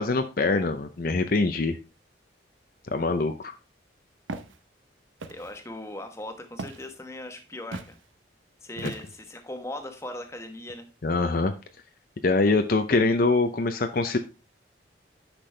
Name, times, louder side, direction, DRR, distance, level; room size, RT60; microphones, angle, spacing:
voice 1, 0.0-1.8 2.9-3.5 8.8-8.9 11.0-11.5 12.2-14.2, left 3 dB, 50° left, 7 dB, 0.6 m, -24 dB
Walk footsteps, 4.3-4.6 5.2-5.6 6.6-6.9 7.7-8.0 8.8-9.3, right 3 dB, 85° right, 0.8 m, -38 dB
voice 2, 5.3-8.0 8.6-10.9, left 1 dB, 15° left, 6 dB, 1.1 m, -39 dB
10.0 x 6.0 x 3.3 m, 0.31 s
head